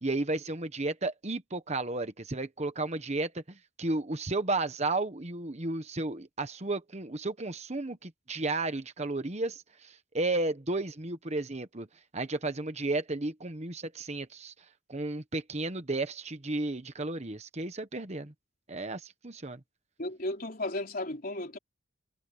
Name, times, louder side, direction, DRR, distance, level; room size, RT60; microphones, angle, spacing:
voice 1, 0.0-11.9 12.1-14.5 14.9-18.3 18.7-19.6, right 2 dB, 35° right, 1.1 m, -33 dB
voice 2, 20.0-21.6, left 2 dB, 45° left, 4.0 m, -34 dB
head